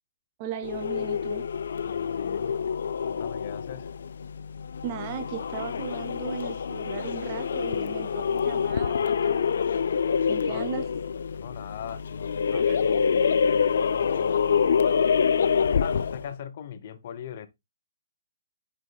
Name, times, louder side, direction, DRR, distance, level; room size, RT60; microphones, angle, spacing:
voice 1, 0.4-1.4 4.8-9.5 10.3-10.9 12.5-12.9, right 9 dB, 30° right, 0.6 m, -37 dB
sound 1, 0.6-16.3, left 6 dB, 70° left, 0.4 m, -26 dB
voice 2, 1.8-2.6 3.0-3.9 10.5-10.6 11.4-14.6 15.8-17.5, left 8 dB, 40° left, 0.8 m, -40 dB
8.1 x 5.5 x 2.3 m
hypercardioid pair, 160°, 0 cm